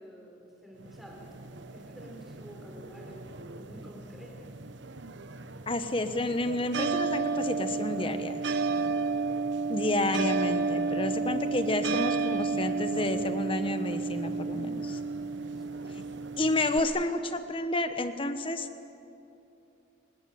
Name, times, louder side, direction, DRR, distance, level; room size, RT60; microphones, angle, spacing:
voice 1, 0.0-1.4 1.7-4.6 9.1-9.6 15.5-16.1, equal, ahead, -1 dB, 4.0 m, -50 dB
sound 1, 0.8-16.8, right 4 dB, 70° right, 1.0 m, -32 dB
voice 2, 5.7-8.4 9.7-15.0 16.4-18.7, left 2 dB, 25° left, 9 dB, 1.2 m, -30 dB
27.5 x 19.0 x 8.6 m, 2.8 s
head